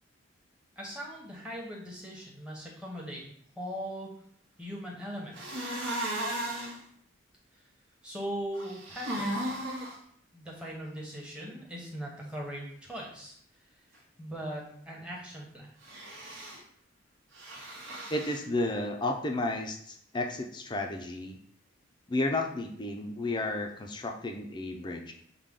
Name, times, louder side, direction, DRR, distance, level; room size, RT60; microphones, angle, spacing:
voice 1, 0.8-3.2 3.6-4.1 4.6-5.7 8.0-9.5 10.3-13.4 14.2-15.7, equal, 5° right, -3 dB, 0.9 m, -40 dB
sound 1, 5.3-6.8 8.6-10.0 15.8-16.6 17.3-18.4, right 1 dB, 70° right, 1.0 m, -35 dB
voice 2, 18.1-21.4 22.1-25.1, left 2 dB, 20° left, 3 dB, 0.4 m, -32 dB
6.5 x 2.2 x 3.6 m, 0.64 s
head